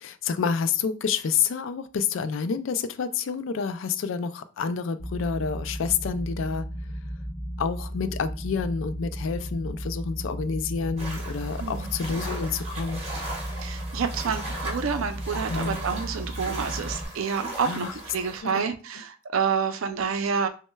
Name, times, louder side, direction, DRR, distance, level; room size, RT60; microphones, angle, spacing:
voice 1, 0.0-6.7 7.6-13.0 15.5-15.8 17.6-17.9 18.4-18.7, left 6 dB, 70° left, 12 dB, 0.3 m, -28 dB
sound 1, 5.0-17.0, equal, 20° left, 0.7 m, -35 dB
sound 2, 11.0-18.4, right 2 dB, 30° right, 1.1 m, -38 dB
voice 2, 11.6-11.9 13.6-17.9 18.1-20.5, right 6 dB, 85° right, 8 dB, 0.5 m, -28 dB
6.1 x 2.1 x 2.2 m, 0.37 s
head